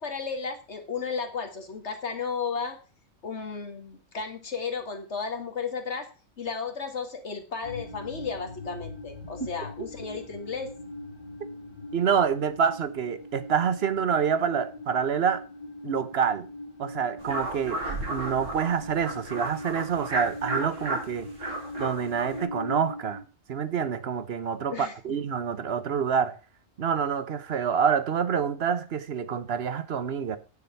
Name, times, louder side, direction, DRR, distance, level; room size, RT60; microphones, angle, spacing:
voice 1, 0.0-2.8 3.2-6.1 6.4-10.7 24.7-24.9, left 5 dB, 60° left, 2.2 m, -34 dB
sound 1, 7.6-23.2, left 1 dB, 30° left, 3.0 m, -41 dB
voice 2, 11.9-15.4 15.8-16.5 16.8-17.8 18.1-21.3 21.8-23.2 23.5-26.4 26.8-30.4, right 7 dB, 55° right, 1.1 m, -27 dB
sound 2, 17.2-22.4, right 2 dB, 70° right, 3.1 m, -34 dB
9.8 x 7.2 x 5.8 m
omnidirectional pair, 1.3 m